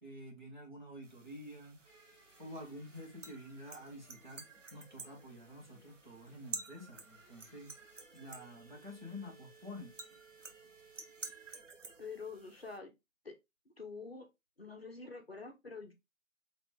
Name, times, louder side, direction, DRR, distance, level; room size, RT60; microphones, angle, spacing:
voice 1, 0.0-1.8 2.4-4.4 4.7-7.7 8.1-9.9, left 1 dB, 35° right, 1.4 m, -49 dB
sound 1, 1.0-12.8, right 4 dB, 65° right, 0.9 m, -51 dB
sound 2, 1.8-11.6, right 3 dB, 30° left, 1.4 m, -64 dB
voice 2, 12.0-12.9 13.2-13.3 13.8-14.3 14.6-15.9, left 4 dB, 50° left, 0.7 m, -46 dB
4.0 x 3.0 x 2.9 m
figure-of-eight pair, 175°, 40 cm